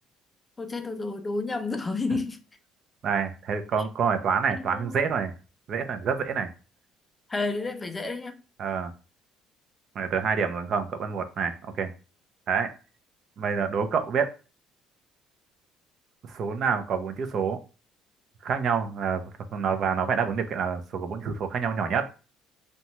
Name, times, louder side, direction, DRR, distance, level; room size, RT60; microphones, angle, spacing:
voice 1, 0.6-2.4 3.8-3.9 4.5-5.0 7.3-8.4, left 3 dB, 15° left, 0.4 m, -31 dB
voice 2, 3.0-5.3 5.7-6.5 8.6-8.9 10.0-11.9 12.5-12.7 13.4-14.3 16.2-17.6 18.4-19.2 19.5-22.1, right 6 dB, 50° right, 0.4 m, -27 dB
2.7 x 2.2 x 3.0 m
cardioid pair, 130°, 0 cm